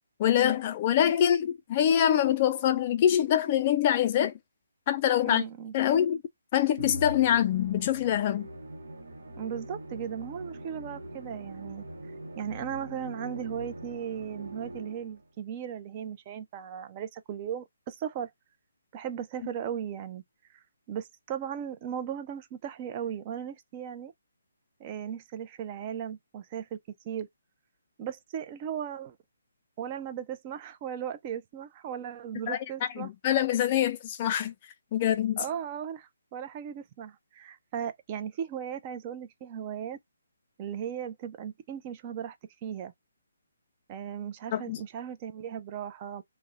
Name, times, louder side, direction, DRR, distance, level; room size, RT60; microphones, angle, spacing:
voice 1, 0.2-4.3 4.9-5.4 5.7-6.2 6.5-8.5 32.5-32.6 33.0-34.5 34.9-35.4 44.5-44.8, left 10 dB, 35° left, 0.3 m, -25 dB
voice 2, 5.2-5.7 9.4-11.8 12.4-18.3 18.9-20.2 20.9-24.1 24.8-26.8 27.0-27.3 28.0-29.2 29.8-33.1 35.4-40.0 40.6-42.4 42.6-42.9 43.9-46.2, right 9 dB, 30° right, 0.5 m, -37 dB
Musical instrument, 6.8-15.3, right 1 dB, 65° right, 0.8 m, -42 dB
2.5 x 2.1 x 3.7 m
figure-of-eight pair, 145°, 0 cm